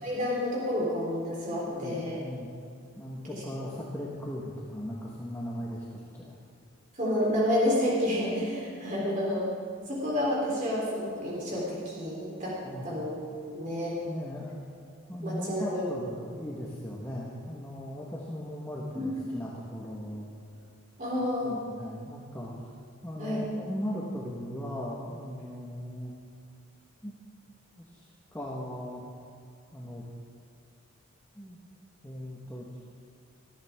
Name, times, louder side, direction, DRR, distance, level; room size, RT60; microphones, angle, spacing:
voice 1, 0.0-2.2 3.3-3.7 7.0-9.5 9.9-12.5 12.8-13.1 13.4-14.0 15.2-15.9 18.9-19.1 21.0-21.6 23.2-23.4, left 1 dB, 35° right, -5 dB, 3.5 m, -30 dB
voice 2, 1.5-2.5 3.0-6.4 12.6-12.9 14.0-14.6 15.1-20.3 21.4-22.6 23.0-26.1 27.0-27.1 27.8-29.0 29.7-30.0 31.3-31.6 32.0-32.9, equal, 10° left, -6 dB, 1.4 m, -38 dB
19.0 x 13.0 x 3.6 m, 2.4 s
head